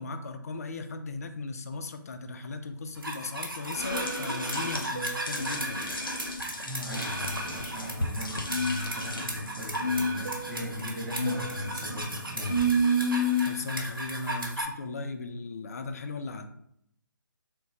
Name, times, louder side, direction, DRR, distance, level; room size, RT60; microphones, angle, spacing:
voice 1, 0.0-6.0 13.4-16.5, left 3 dB, 45° left, 8 dB, 0.4 m, -37 dB
Fixed-wing aircraft airplane, 2.3-7.7 8.1-13.9, right 7 dB, 40° right, 0.3 m, -46 dB
sound 1, 3.0-14.6, equal, 80° right, 1.1 m, -30 dB
sound 2, 4.0-9.8, left 1 dB, 75° left, 0.7 m, -38 dB
voice 2, 6.4-12.9, left 1 dB, 5° right, -8 dB, 0.6 m, -37 dB
3.7 x 2.2 x 3.9 m, 0.74 s
figure-of-eight pair, 145°, 11 cm